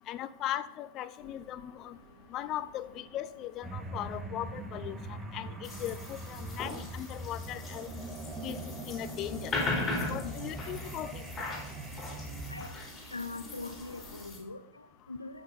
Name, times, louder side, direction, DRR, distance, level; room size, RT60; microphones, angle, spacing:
voice 1, 0.1-2.0 2.3-5.0 5.3-5.5 5.8-7.9 8.4-8.6 8.9-9.5 10.1-11.2, left 12 dB, 35° left, 14 dB, 0.6 m, -38 dB
sound 1, 1.2-14.3, right 2 dB, 35° right, 4.5 m, -54 dB
sound 2, 3.6-12.7, right 2 dB, 15° right, 1.2 m, -42 dB
sound 3, 5.6-14.4, left 2 dB, 20° left, 3.7 m, -39 dB
voice 2, 13.1-15.4, left 3 dB, 80° left, 10 dB, 0.8 m, -42 dB
15.5 x 6.1 x 4.1 m, 0.84 s
figure-of-eight pair, 90°, 0 cm